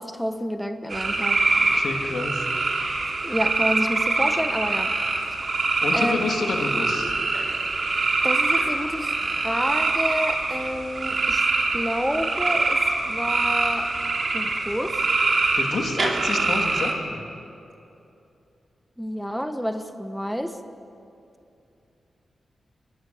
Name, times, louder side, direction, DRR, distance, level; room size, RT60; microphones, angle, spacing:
voice 1, 0.0-1.4 3.2-4.9 5.9-6.2 8.2-11.4 11.7-12.8 13.1-13.9 14.3-15.0 19.0-20.5, equal, ahead, 7 dB, 1.2 m, -29 dB
sound 1, 0.9-16.9, right 3 dB, 55° right, 3.0 m, -24 dB
voice 2, 1.5-2.4 5.8-7.1 15.6-17.2, left 3 dB, 75° left, 2 dB, 3.0 m, -29 dB
24.0 x 19.0 x 8.0 m, 2.7 s
cardioid pair, 70°, 0 cm